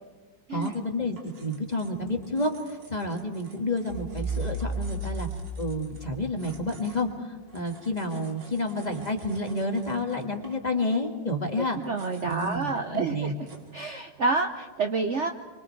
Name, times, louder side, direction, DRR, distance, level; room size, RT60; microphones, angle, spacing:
voice 1, 0.5-5.3 5.6-11.8 12.3-13.3, left 1 dB, 25° left, 3 dB, 1.7 m, -30 dB
sound 1, 0.5-13.8, right 3 dB, 80° right, 2.8 m, -53 dB
sound 2, 3.9-6.7, right 2 dB, 25° right, 2.4 m, -33 dB
voice 2, 11.6-13.3 13.7-15.3, right 3 dB, 50° right, 5 dB, 0.9 m, -28 dB
29.0 x 24.0 x 4.6 m, 1.3 s
omnidirectional pair, 1.9 m